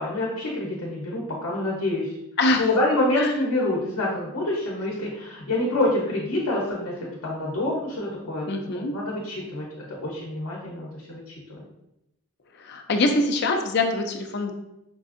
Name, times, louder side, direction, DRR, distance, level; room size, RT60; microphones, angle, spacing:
voice 1, 0.0-2.2 2.6-11.6, left 1 dB, 65° left, -3 dB, 0.8 m, -27 dB
voice 2, 8.5-8.9 12.6-14.5, left 2 dB, 50° left, 4 dB, 0.4 m, -24 dB
5.3 x 2.5 x 2.4 m, 0.85 s
head